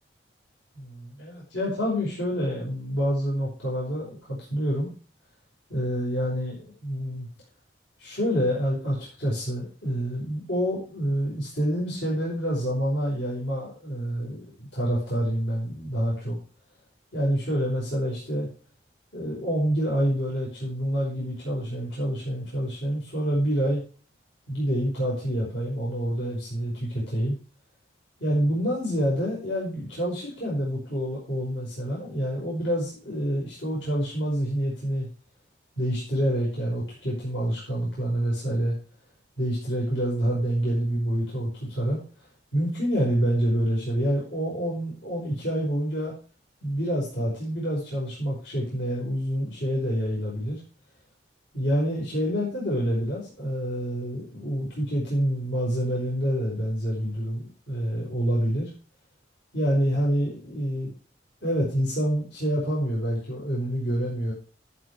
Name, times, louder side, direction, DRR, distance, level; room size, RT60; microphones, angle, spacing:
voice 1, 0.7-4.9 5.7-7.3 8.0-16.4 17.1-18.5 19.1-23.8 24.5-27.4 28.2-35.1 35.8-38.7 39.4-42.0 42.5-46.1 46.6-50.6 51.5-58.7 59.5-60.9 61.4-64.3, equal, 80° left, -6 dB, 5.4 m, -27 dB
13.0 x 7.6 x 4.9 m, 0.37 s
head